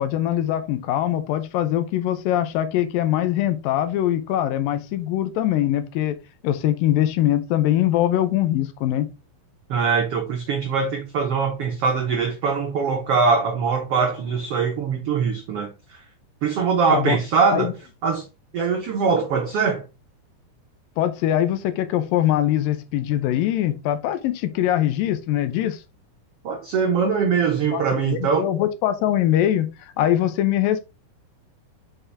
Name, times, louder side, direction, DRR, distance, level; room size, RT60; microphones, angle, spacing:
voice 1, 0.0-6.2 6.4-9.1 16.9-17.2 17.5-17.7 21.0-25.8 27.7-29.7 30.0-30.9, left 12 dB, 80° left, 2.4 m, -22 dB
voice 2, 9.7-16.0 16.4-17.7 18.0-18.2 18.5-19.8 26.4-28.5, right 5 dB, 85° right, 1.3 m, -22 dB
5.6 x 5.5 x 3.4 m
omnidirectional pair, 4.2 m